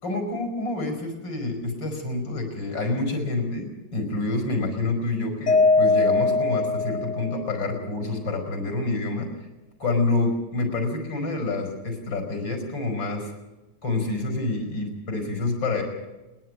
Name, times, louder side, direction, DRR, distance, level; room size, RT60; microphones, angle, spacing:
voice 1, 0.0-9.3 9.8-13.3 13.8-15.8, left 2 dB, 90° left, 4 dB, 5.4 m, -27 dB
Mallet percussion, 5.5-7.7, left 3 dB, 65° left, 1.7 m, -21 dB
29.5 x 10.5 x 9.5 m, 1.1 s
omnidirectional pair, 2.0 m